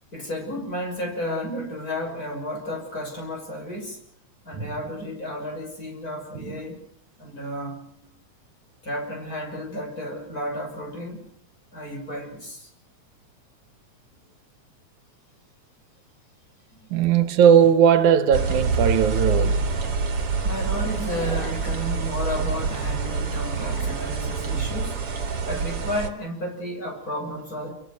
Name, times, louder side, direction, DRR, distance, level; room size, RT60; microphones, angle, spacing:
voice 1, 0.1-4.0 4.4-6.9 7.2-7.8 8.8-11.3 11.7-12.7 14.1-14.2 16.7-16.9 20.4-25.0 25.4-27.7, equal, 30° left, 6.7 m, -32 dB
voice 2, 16.9-19.7, right 8 dB, 85° right, 2.7 m, -18 dB
sound 1, 18.3-26.1, right 4 dB, 50° right, 3.0 m, -26 dB
sound 2, 18.9-19.1 19.5-19.6 19.9-20.1 20.4-24.2, left 1 dB, 60° left, 6.1 m, -40 dB
28.0 x 23.0 x 6.4 m
omnidirectional pair, 3.3 m